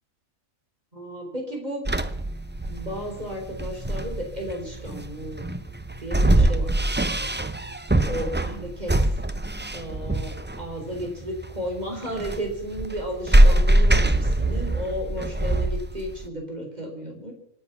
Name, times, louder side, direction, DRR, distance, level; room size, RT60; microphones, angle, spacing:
voice 1, 0.9-1.8 2.7-5.4 6.0-7.4 7.6-9.2 9.7-17.3, equal, 30° right, 2 dB, 4.4 m, -34 dB
sound 1, 1.9-16.3, right 1 dB, 15° right, 0.4 m, -23 dB
25.5 x 9.5 x 5.9 m, 0.81 s
omnidirectional pair, 1.4 m